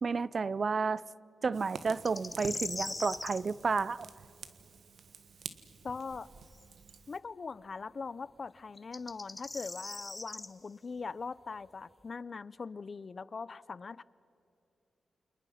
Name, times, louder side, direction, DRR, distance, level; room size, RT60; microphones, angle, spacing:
voice 1, 0.0-1.0 1.4-4.1, right 4 dB, 45° right, 0.5 m, -31 dB
Fire, 1.5-7.2, right 5 dB, 70° right, 1.6 m, -49 dB
sound 1, 2.0-3.4 6.6-6.7 8.8-10.5, left 2 dB, 25° left, 1.1 m, -40 dB
voice 2, 5.8-6.3 7.1-14.0, left 4 dB, 45° left, 0.6 m, -41 dB
29.5 x 28.5 x 5.7 m
wide cardioid pair, 100°, 0 cm